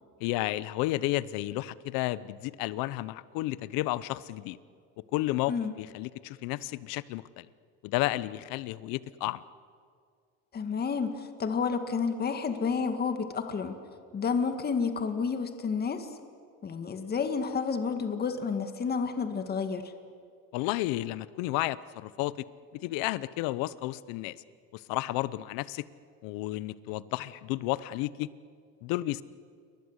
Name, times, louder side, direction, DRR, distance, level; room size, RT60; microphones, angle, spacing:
voice 1, 0.2-4.6 5.1-7.5 7.8-9.4 20.5-22.3 22.7-24.4 24.7-25.8 26.2-28.3 28.8-29.2, left 17 dB, 80° left, 18 dB, 1.0 m, -32 dB
voice 2, 10.5-13.8 14.1-16.1 16.6-19.9, left 5 dB, 30° left, 7 dB, 2.0 m, -30 dB
29.0 x 24.0 x 8.2 m, 2.2 s
cardioid pair, 135°, 34 cm